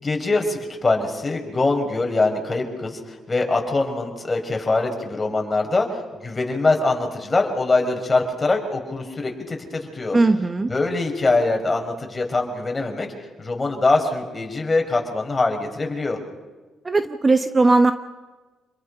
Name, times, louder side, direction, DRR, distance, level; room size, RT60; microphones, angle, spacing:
voice 1, 0.0-3.0 3.3-10.2 10.7-13.1 13.4-16.2, left 3 dB, 25° left, 3 dB, 5.4 m, -23 dB
voice 2, 10.1-10.7 16.8-17.9, right 3 dB, 25° right, 9 dB, 1.1 m, -18 dB
28.0 x 22.0 x 5.6 m, 1.2 s
cardioid pair, 90°, 0 cm